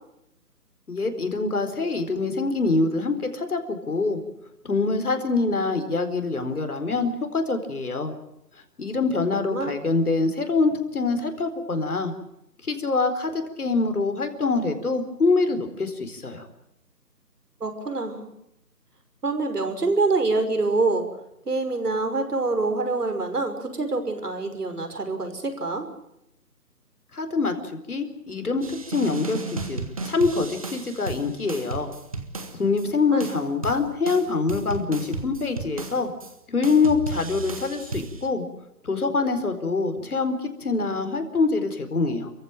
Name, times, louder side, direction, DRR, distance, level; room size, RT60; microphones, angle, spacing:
voice 1, 0.9-4.2 4.6-8.1 8.8-12.1 12.6-16.5 27.1-31.9 32.5-36.1 36.5-38.4 38.8-42.3, left 3 dB, 60° left, 8 dB, 4.5 m, -25 dB
voice 2, 17.6-18.3 19.2-21.1 21.5-25.9 33.1-33.3, right 3 dB, 70° right, 7 dB, 5.9 m, -25 dB
sound 1, 28.6-32.9 33.2-36.3 36.6-38.3, right 3 dB, 20° right, 1.5 m, -34 dB
29.0 x 15.5 x 9.1 m, 0.81 s
figure-of-eight pair, 170°, 49 cm